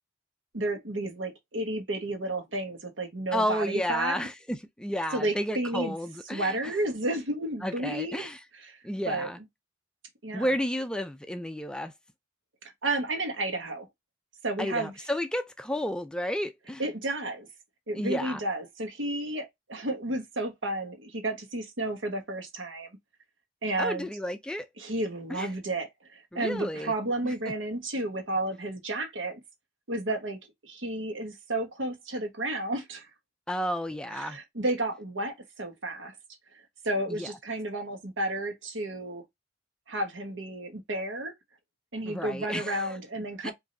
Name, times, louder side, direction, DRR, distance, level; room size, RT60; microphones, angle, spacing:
voice 1, 0.5-4.2 5.1-5.9 6.3-8.3 8.7-8.8 9.1-9.3 10.2-10.5 12.8-13.9 14.4-14.9 16.8-17.5 17.9-22.9 23.6-24.1 24.8-29.4 29.9-33.1 34.1-36.1 36.8-39.2 39.9-41.3 41.9-43.5, right 1 dB, 80° right, 1.3 m, -32 dB
voice 2, 3.3-6.8 7.6-8.4 8.8-9.4 10.3-11.9 14.6-16.8 17.9-18.4 23.8-24.7 25.3-25.5 26.3-26.9 27.2-27.3 33.5-34.4 37.1-37.3 42.1-42.9 43.4-43.5, equal, 5° left, 0.3 m, -32 dB
4.9 x 2.7 x 2.6 m
head